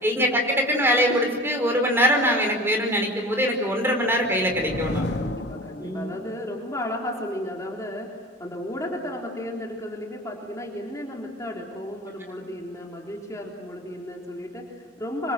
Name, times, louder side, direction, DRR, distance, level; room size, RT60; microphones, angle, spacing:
voice 1, 0.0-5.0 5.8-6.1, equal, 15° right, 3 dB, 4.6 m, -23 dB
sound 1, 3.6-6.4, left 1 dB, 75° left, 1.4 m, -33 dB
voice 2, 5.1-15.3, left 1 dB, 20° left, -1 dB, 3.6 m, -34 dB
27.0 x 26.0 x 7.8 m, 1.5 s
head